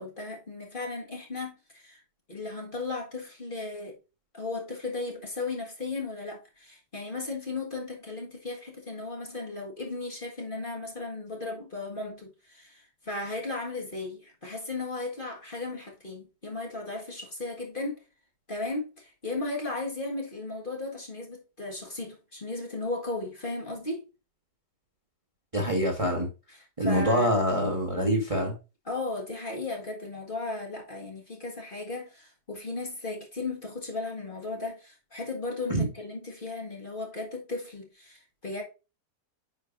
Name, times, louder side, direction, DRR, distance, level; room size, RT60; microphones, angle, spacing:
voice 1, 0.0-2.0 2.3-4.0 4.3-18.0 18.5-24.1 26.5-27.4 28.9-38.6, left 3 dB, 30° left, 1.8 m, -36 dB
voice 2, 25.5-26.3 26.8-28.5 35.7-35.9, equal, 20° right, 1.4 m, -25 dB
9.9 x 5.2 x 2.6 m
omnidirectional pair, 1.8 m